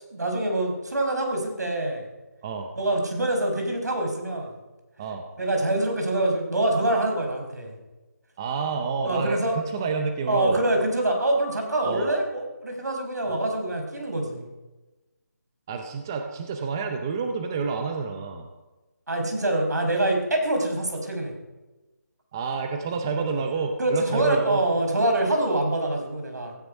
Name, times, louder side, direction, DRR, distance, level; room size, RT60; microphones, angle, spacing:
voice 1, 0.1-2.0 2.8-4.5 5.4-7.7 9.0-9.5 10.3-14.5 19.1-21.3 23.8-26.5, right 1 dB, 70° right, 3 dB, 5.3 m, -25 dB
voice 2, 8.4-10.6 11.8-12.1 15.7-18.5 22.3-24.6, right 5 dB, 10° right, 5 dB, 0.6 m, -28 dB
16.0 x 15.5 x 5.4 m, 1.1 s
figure-of-eight pair, 175°, 10 cm